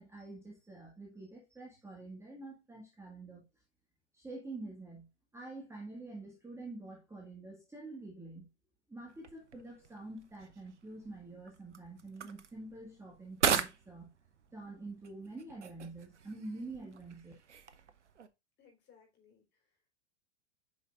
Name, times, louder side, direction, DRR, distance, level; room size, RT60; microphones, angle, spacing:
voice 1, 0.0-3.5 4.1-5.1 5.3-8.5 8.9-14.1 14.5-17.3, right 2 dB, 10° right, 1.9 m, -47 dB
sound 1, 9.1-18.3, right 7 dB, 80° right, 0.9 m, -40 dB
voice 2, 18.6-20.0, left 7 dB, 30° left, 4.0 m, -65 dB
8.5 x 5.6 x 2.5 m
figure-of-eight pair, 100°, 35 cm